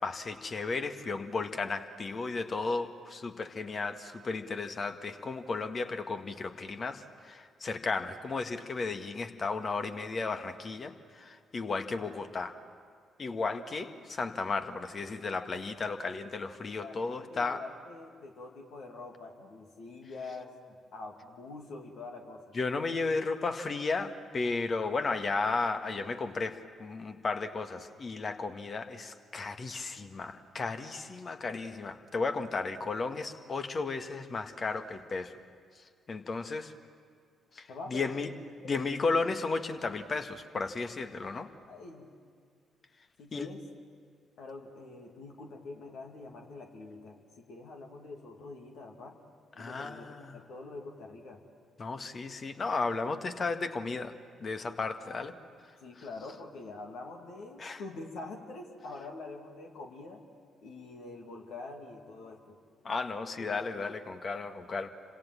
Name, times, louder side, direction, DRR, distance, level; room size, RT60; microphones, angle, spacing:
voice 1, 0.0-12.6 13.2-17.6 22.5-35.3 36.1-36.7 37.6-38.3 38.6-41.5 43.3-43.5 49.6-50.4 51.8-54.1 54.4-55.3 56.0-56.1 57.6-57.8 62.8-64.9, left 4 dB, 40° left, 8 dB, 1.8 m, -34 dB
voice 2, 16.8-20.5 20.9-22.4 37.7-38.1 38.6-38.9 41.7-42.1 43.2-43.6 44.4-47.2 47.5-49.2 49.5-51.4 55.8-60.2 60.6-62.6 63.2-63.3, left 3 dB, 60° left, 2 dB, 2.6 m, -45 dB
29.5 x 26.5 x 7.5 m, 2.2 s
figure-of-eight pair, 40°, 0 cm